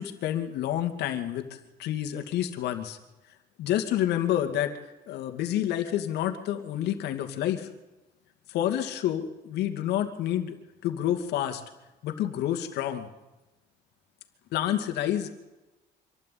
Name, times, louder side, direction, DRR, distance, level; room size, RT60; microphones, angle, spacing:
voice 1, 0.0-1.5 1.8-3.0 3.6-4.7 5.1-7.7 8.5-10.5 10.8-11.6 12.0-13.1 14.5-15.3, left 11 dB, 80° left, 6 dB, 2.5 m, -28 dB
26.0 x 12.5 x 9.5 m, 1.1 s
cardioid pair, 110°, 17 cm